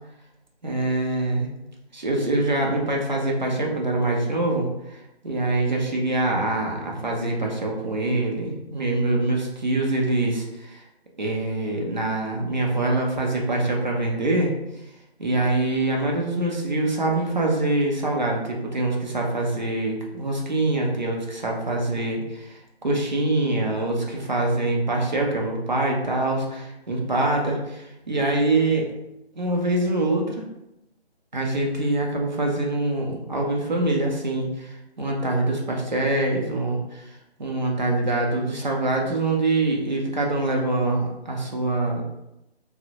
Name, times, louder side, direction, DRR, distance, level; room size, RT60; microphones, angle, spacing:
voice 1, 0.6-1.5 1.9-10.8 11.2-14.5 15.2-28.9 29.4-30.4 31.3-37.1 37.4-42.0, right 2 dB, 45° right, -1 dB, 0.5 m, -24 dB
2.7 x 2.0 x 2.7 m, 0.90 s
figure-of-eight pair, 150°, 32 cm